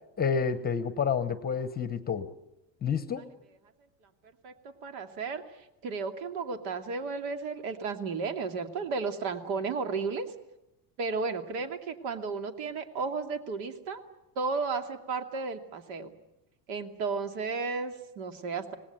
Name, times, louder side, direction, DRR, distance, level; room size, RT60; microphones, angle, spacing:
voice 1, 0.2-2.3 2.8-3.2, left 6 dB, 20° left, 12 dB, 0.9 m, -29 dB
voice 2, 4.4-5.4 5.8-10.3 11.0-14.0 14.4-16.1 16.7-18.8, right 4 dB, 70° right, 7 dB, 2.7 m, -33 dB
26.5 x 19.0 x 9.2 m, 0.91 s
cardioid pair, 165°, 49 cm